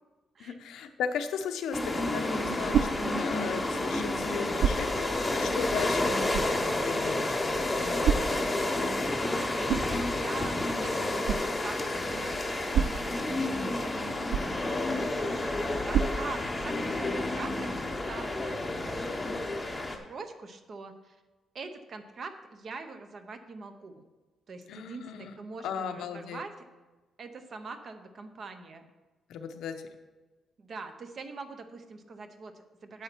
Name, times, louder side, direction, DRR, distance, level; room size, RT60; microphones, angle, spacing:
voice 1, 0.4-8.2 15.6-15.8 24.7-25.4 25.6-26.4 29.3-29.7, left 7 dB, 85° left, 6 dB, 0.8 m, -37 dB
sound 1, 1.7-20.0, left 2 dB, 10° left, 0.8 m, -30 dB
sound 2, 2.1-17.0, right 7 dB, 60° right, 0.3 m, -35 dB
voice 2, 9.2-14.0 14.6-19.3 19.7-21.2 21.5-24.0 24.5-26.7 27.2-28.9 30.6-33.0, right 4 dB, 35° right, 8 dB, 0.7 m, -44 dB
9.1 x 7.8 x 4.5 m, 1.2 s
cardioid pair, 180°, 0 cm